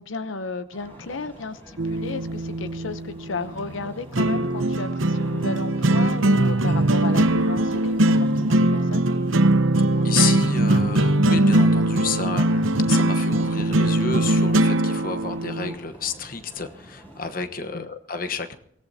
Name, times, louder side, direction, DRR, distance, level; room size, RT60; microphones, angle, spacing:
voice 1, 0.0-9.0 17.7-17.9, left 3 dB, 85° left, 11 dB, 0.8 m, -34 dB
sound 1, 0.7-17.5, right 1 dB, 10° left, 5.6 m, -47 dB
sound 2, 1.8-15.7, right 1 dB, 90° right, 0.9 m, -21 dB
voice 2, 10.0-18.5, left 5 dB, 45° left, 8 dB, 1.1 m, -30 dB
24.0 x 18.0 x 2.8 m, 0.71 s
head